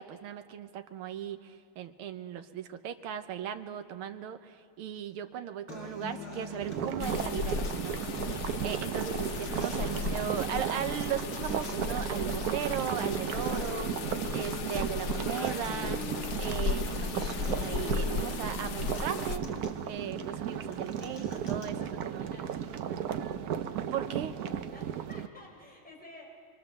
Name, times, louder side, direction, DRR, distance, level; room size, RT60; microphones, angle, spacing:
voice 1, 0.0-8.0 8.6-14.1 14.3-16.0 16.4-19.5 19.9-22.3 23.9-24.3, right 9 dB, 85° right, 9 dB, 1.8 m, -37 dB
Acoustic guitar, 5.7-21.7, left 2 dB, 60° left, 2.8 m, -43 dB
sound 1, 6.6-25.3, right 8 dB, 65° right, 1.0 m, -35 dB
sound 2, 7.0-19.4, left 6 dB, 85° left, 0.6 m, -36 dB
voice 2, 21.8-23.1 24.0-24.1 24.7-26.3, left 1 dB, 5° left, -2 dB, 3.8 m, -54 dB
24.5 x 24.0 x 6.8 m, 2.2 s
omnidirectional pair, 2.3 m